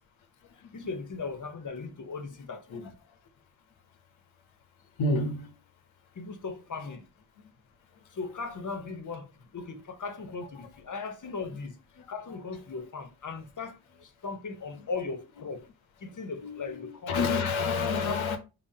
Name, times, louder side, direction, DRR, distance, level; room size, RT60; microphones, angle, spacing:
voice 1, 0.7-2.9 6.1-7.0 8.1-11.8 12.1-15.7 16.0-17.3 17.6-17.7 18.0-18.2, left 4 dB, 40° left, 1.0 m, -38 dB
voice 2, 5.0-5.5 12.0-12.1 16.4-18.4, left 3 dB, 90° left, 1.0 m, -29 dB
4.8 x 3.6 x 2.8 m
cardioid pair, 80°, 46 cm